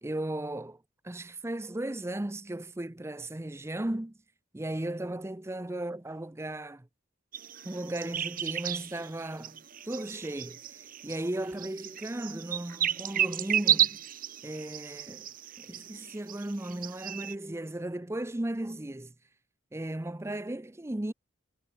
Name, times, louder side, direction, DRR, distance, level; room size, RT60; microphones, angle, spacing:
voice 1, 0.0-4.1 4.5-6.9 7.6-14.0 14.4-15.3 15.6-19.1 19.7-21.1, right 1 dB, 15° right, 0.6 m, -36 dB
sound 1, 7.3-17.4, right 10 dB, 45° right, 1.4 m, -33 dB
head